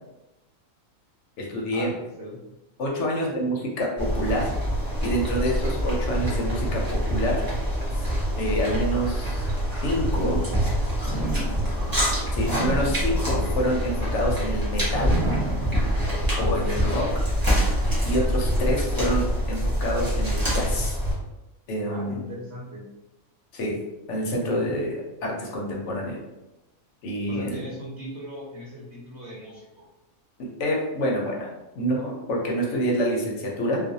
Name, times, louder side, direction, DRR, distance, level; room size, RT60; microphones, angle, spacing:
voice 1, 1.4-1.9 2.8-4.5 5.0-7.4 8.4-9.4 9.8-10.4 12.3-15.2 16.4-17.1 18.0-21.0 21.7-22.3 23.5-23.8 24.1-26.2 27.0-27.6 30.4-31.5 31.8-33.8, equal, 65° left, -1 dB, 0.9 m, -27 dB
sound 1, 4.0-21.1, equal, 20° right, 0.6 m, -25 dB
sound 2, 8.9-10.5 11.0-16.3 16.8-16.9 17.7-17.8, right 2 dB, 25° left, 0.9 m, -35 dB
voice 2, 21.8-22.8 27.3-29.7, equal, 60° right, -6 dB, 1.0 m, -38 dB
2.4 x 2.3 x 2.6 m, 0.98 s
omnidirectional pair, 1.4 m